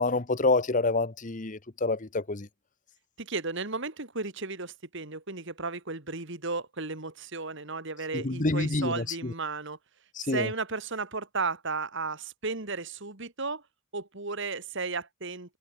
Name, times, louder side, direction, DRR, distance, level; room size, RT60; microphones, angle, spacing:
voice 1, 0.0-2.5 8.1-9.3 10.2-10.5, left 3 dB, 35° left, 1.0 m, -27 dB
voice 2, 3.2-9.8 10.2-13.6 13.9-15.6, right 3 dB, 55° right, 2.5 m, -34 dB
head